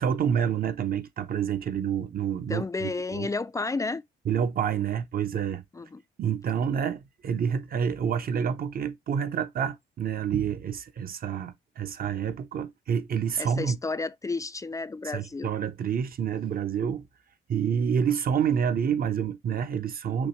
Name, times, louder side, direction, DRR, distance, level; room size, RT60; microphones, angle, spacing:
voice 1, 0.0-3.3 4.2-5.6 6.2-13.8 15.1-17.0 17.5-20.3, right 8 dB, 50° right, 0.7 m, -28 dB
voice 2, 2.5-4.0 5.7-6.0 13.4-15.5, left 3 dB, 15° left, 0.3 m, -32 dB
6.1 x 2.1 x 3.0 m
cardioid pair, 90°, 20 cm